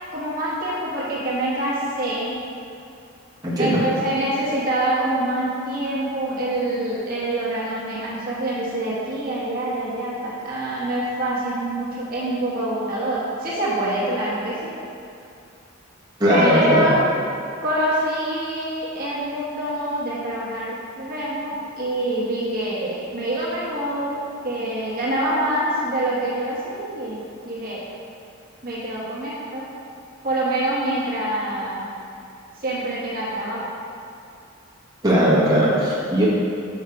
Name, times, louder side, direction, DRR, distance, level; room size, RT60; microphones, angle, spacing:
voice 1, 0.1-2.3 3.6-14.7 16.3-17.0 17.6-27.8 28.6-29.6 30.2-31.9 32.6-33.6, right 1 dB, 45° right, -7 dB, 1.4 m, -25 dB
voice 2, 3.4-3.8 16.2-16.9 35.0-36.3, equal, 20° right, -9 dB, 1.4 m, -18 dB
6.4 x 5.6 x 4.9 m, 2.6 s
head